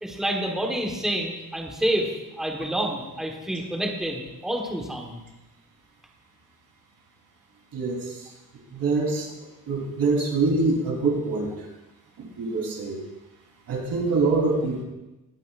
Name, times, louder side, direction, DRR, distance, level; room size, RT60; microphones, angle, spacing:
voice 1, 0.0-5.2, right 1 dB, ahead, 1 dB, 1.3 m, -28 dB
voice 2, 7.7-8.2 8.7-9.3 9.7-11.5 12.2-13.0 13.7-14.8, right 3 dB, 75° right, -2 dB, 3.6 m, -24 dB
20.0 x 9.4 x 2.5 m, 1.0 s
wide cardioid pair, 170°, 34 cm